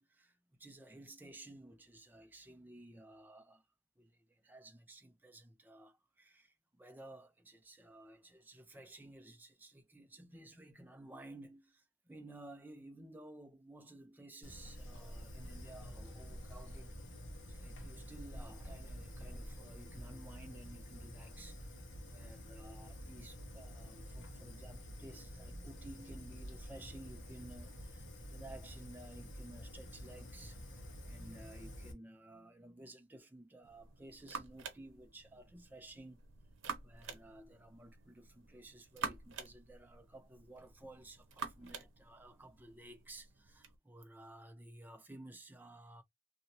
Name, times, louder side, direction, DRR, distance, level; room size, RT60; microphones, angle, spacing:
voice 1, 0.0-3.6 4.0-16.9 17.5-36.2 36.8-46.0, right 1 dB, 10° right, 0.4 m, -55 dB
Fire, 14.4-31.9, equal, 65° left, 1.1 m, -49 dB
sound 1, 33.6-43.8, right 5 dB, 70° right, 0.8 m, -48 dB
2.8 x 2.7 x 2.8 m
head